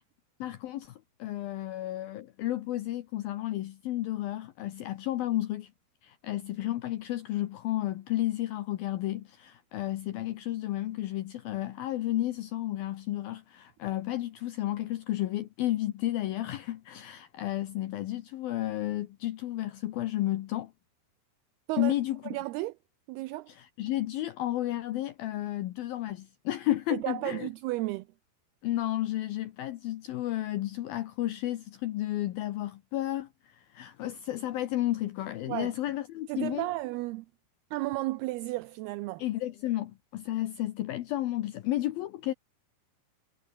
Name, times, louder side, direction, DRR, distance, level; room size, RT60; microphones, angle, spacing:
voice 1, 0.4-5.7 6.0-20.7 21.8-22.4 23.5-27.5 28.6-36.7 39.2-42.3, left 14 dB, 70° left, 2.5 m, -32 dB
voice 2, 22.2-22.8 23.1-23.5 26.9-28.1 35.5-35.7 36.3-37.3 37.7-39.2, right 19 dB, 80° right, 2.4 m, -33 dB
omnidirectional pair, 5.0 m